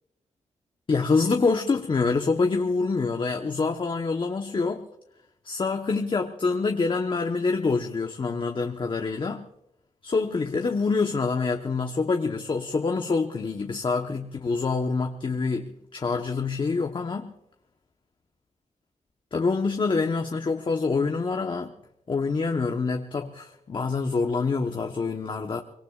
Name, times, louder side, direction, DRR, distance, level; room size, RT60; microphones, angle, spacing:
voice 1, 0.9-4.8 5.4-9.5 10.0-17.3 19.3-21.7 22.1-25.6, left 4 dB, 40° left, 1.1 m, -26 dB
24.5 x 22.5 x 2.4 m
cardioid pair, 90°, 13 cm